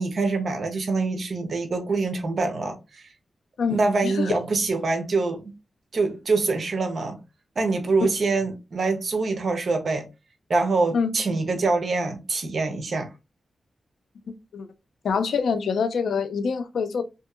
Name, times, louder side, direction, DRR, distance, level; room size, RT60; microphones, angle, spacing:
voice 1, 0.0-3.1 3.7-5.5 5.9-7.2 7.6-10.1 10.5-13.1, right 3 dB, 60° right, 0.8 m, -25 dB
voice 2, 3.6-4.3 10.9-11.1 14.5-14.7 15.0-17.0, left 5 dB, 85° left, 0.4 m, -25 dB
2.7 x 2.7 x 2.4 m
cardioid pair, 70°, 0 cm